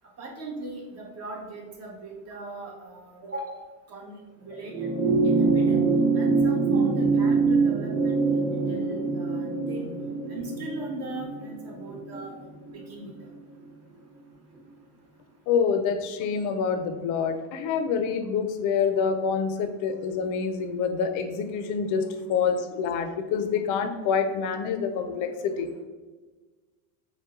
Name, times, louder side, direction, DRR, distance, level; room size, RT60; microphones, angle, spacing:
voice 1, 0.2-3.6 3.9-4.9 5.2-5.8 6.1-9.9 10.3-12.3 12.9-13.1, right 2 dB, 35° right, -1 dB, 1.2 m, -39 dB
sound 1, 4.6-13.3 14.6-14.7, right 4 dB, 10° right, 0.8 m, -24 dB
voice 2, 15.5-25.7, left 6 dB, 45° left, 8 dB, 0.5 m, -27 dB
5.2 x 2.2 x 3.7 m, 1.3 s
supercardioid pair, 125°, 44 cm